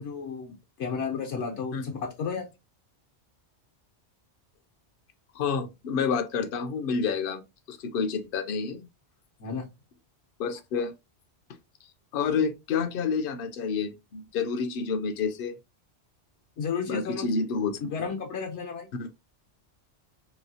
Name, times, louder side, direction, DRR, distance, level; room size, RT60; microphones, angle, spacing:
voice 1, 0.0-2.5 9.4-9.7 16.6-17.3 17.8-18.9, left 5 dB, 80° left, 1.2 m, -33 dB
voice 2, 5.3-7.4 7.7-8.9 10.4-10.9 12.1-15.6 16.9-17.8 19.0-19.1, left 5 dB, 60° left, 0.7 m, -29 dB
3.0 x 2.7 x 2.7 m
omnidirectional pair, 1.2 m